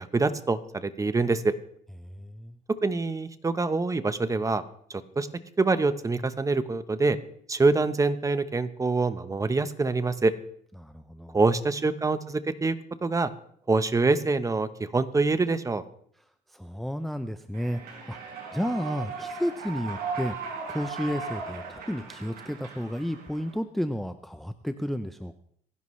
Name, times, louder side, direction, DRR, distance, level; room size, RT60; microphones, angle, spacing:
voice 1, 0.0-1.5 2.8-4.6 4.9-5.3 5.6-7.2 7.5-10.3 11.3-12.7 13.0-13.3 13.7-15.8, right 3 dB, 20° right, 12 dB, 1.0 m, -25 dB
voice 2, 2.0-2.6 10.8-11.4 16.5-18.2 18.5-25.4, equal, ahead, 9 dB, 0.6 m, -32 dB
Human voice / Clapping / Cheering, 17.5-23.5, right 5 dB, 70° right, 5.1 m, -37 dB
27.0 x 11.0 x 3.2 m, 0.65 s
cardioid pair, 110°, 17 cm